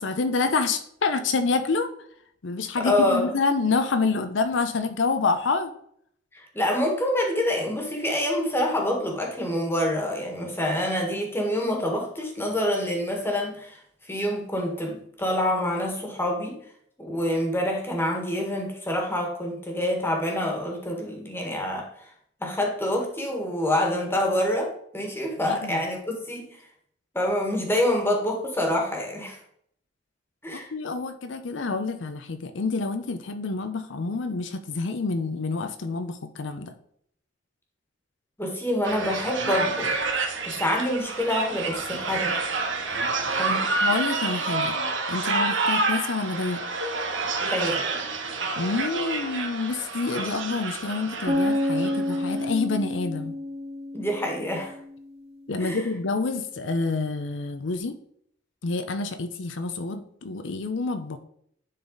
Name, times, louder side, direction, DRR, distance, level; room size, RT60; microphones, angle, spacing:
voice 1, 0.0-1.9 2.4-5.7 25.4-25.8 30.5-36.7 43.6-44.8 45.1-46.6 48.6-53.3 55.5-57.9 58.6-61.2, left 3 dB, 85° left, 9 dB, 0.6 m, -27 dB
voice 2, 2.8-3.3 6.3-16.6 17.0-21.9 22.4-26.6 27.1-29.4 30.4-30.7 38.4-39.9 40.4-42.3 43.4-43.7 47.4-47.8 53.9-54.7 55.6-55.8, left 1 dB, 15° left, 1 dB, 1.5 m, -26 dB
sound 1, 38.8-52.2, right 3 dB, 85° right, 1.0 m, -28 dB
sound 2, 51.3-55.2, left 1 dB, 35° right, 1.6 m, -29 dB
10.0 x 4.1 x 3.8 m, 0.67 s
head